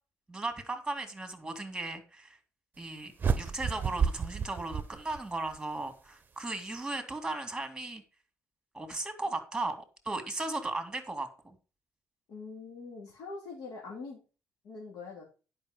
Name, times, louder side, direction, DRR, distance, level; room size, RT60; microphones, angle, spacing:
voice 1, 0.3-2.4 2.8-3.1 3.4-8.0 8.7-11.6, right 2 dB, 10° right, 2.2 m, -36 dB
sound 1, 3.2-5.6, right 6 dB, 30° right, 0.8 m, -31 dB
voice 2, 12.3-14.2 14.6-15.2, left 4 dB, 85° left, 3.0 m, -43 dB
11.0 x 5.5 x 5.2 m
cardioid pair, 130°, 6 cm